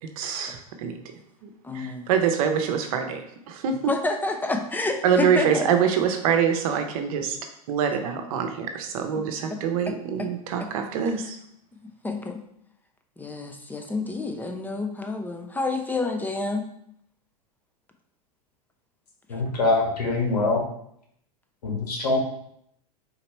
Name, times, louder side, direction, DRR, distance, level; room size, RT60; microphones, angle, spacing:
voice 1, 0.2-1.0 1.4-3.9 5.0-7.4 7.7-11.4, right 7 dB, 65° right, 6 dB, 0.8 m, -25 dB
voice 2, 1.6-2.1 3.9-5.7 9.5-9.6 10.2-10.3 12.0-12.4 13.2-16.7, left 3 dB, 10° left, 4 dB, 0.7 m, -29 dB
voice 3, 19.3-20.6 21.6-22.2, left 3 dB, 80° left, -3 dB, 1.8 m, -23 dB
3.9 x 2.9 x 4.4 m, 0.72 s
hypercardioid pair, 100°, 20 cm